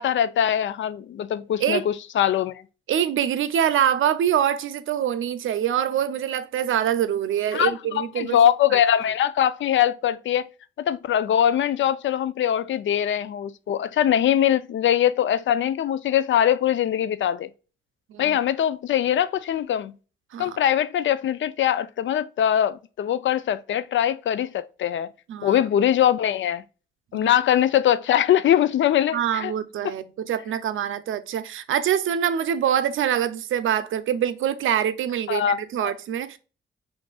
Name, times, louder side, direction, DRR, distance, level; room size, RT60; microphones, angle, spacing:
voice 1, 0.0-2.6 7.5-10.5 10.8-17.5 18.2-19.9 20.4-25.1 25.4-26.6 27.1-29.5 29.8-29.9 35.3-35.9, left 10 dB, 70° left, 0.4 m, -22 dB
voice 2, 2.9-8.4 8.7-8.8 18.1-18.4 20.3-20.5 25.3-25.6 27.1-27.2 29.1-36.4, right 9 dB, 80° right, 0.5 m, -24 dB
5.9 x 2.6 x 2.3 m
cardioid pair, 70°, 20 cm